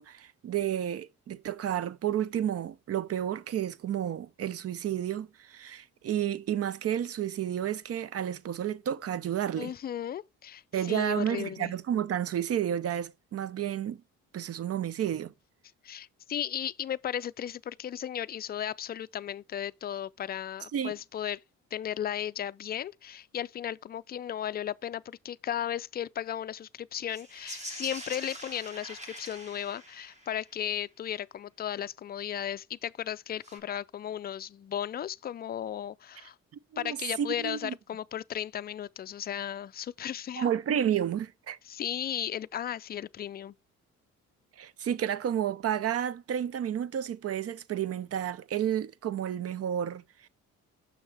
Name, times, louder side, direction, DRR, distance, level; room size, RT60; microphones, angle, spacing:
voice 1, 0.0-9.7 10.7-14.0 14.3-15.3 20.7-20.9 36.7-37.7 40.4-41.6 44.6-50.3, right 10 dB, 50° right, 0.6 m, -31 dB
voice 2, 9.6-11.7 15.8-21.4 21.7-36.4 36.8-40.5 41.6-43.5, left 10 dB, 35° left, 0.4 m, -35 dB
sound 1, 27.1-30.6 33.4-33.6, right 1 dB, 25° right, 2.4 m, -44 dB
6.5 x 6.4 x 3.3 m
cardioid pair, 90°, 30 cm